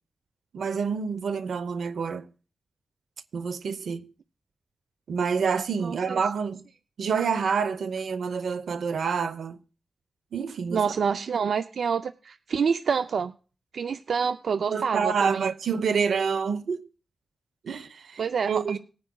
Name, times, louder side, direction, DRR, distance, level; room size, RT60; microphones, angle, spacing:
voice 1, 0.5-2.3 3.3-4.1 5.1-6.6 7.0-9.6 10.3-10.8 14.6-16.9 17.6-18.8, right 6 dB, 90° right, 0.8 m, -28 dB
voice 2, 5.8-6.2 10.7-13.3 13.7-15.5 18.2-18.8, right 6 dB, 70° right, 0.4 m, -27 dB
19.5 x 9.6 x 2.3 m
wide cardioid pair, 165°, 0 cm